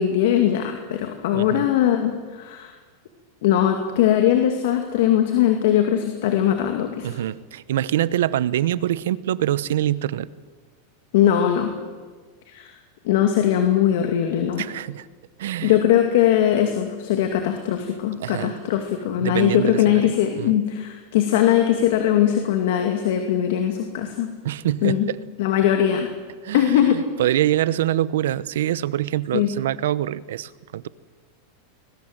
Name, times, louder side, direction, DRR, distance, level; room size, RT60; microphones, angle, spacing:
voice 1, 0.0-2.7 3.4-7.1 11.1-11.7 12.5-12.7 13.0-14.6 15.6-24.3 24.8-25.1 25.4-26.1 26.5-27.0 29.3-29.5, left 10 dB, 65° left, 5 dB, 2.3 m, -20 dB
voice 2, 1.3-1.7 7.0-10.3 14.6-15.1 15.4-15.8 18.2-18.5 19.2-20.5 24.4-25.2 26.4-30.9, right 12 dB, 80° right, 18 dB, 0.9 m, -25 dB
21.5 x 21.0 x 8.0 m, 1.4 s
supercardioid pair, 160°, 0 cm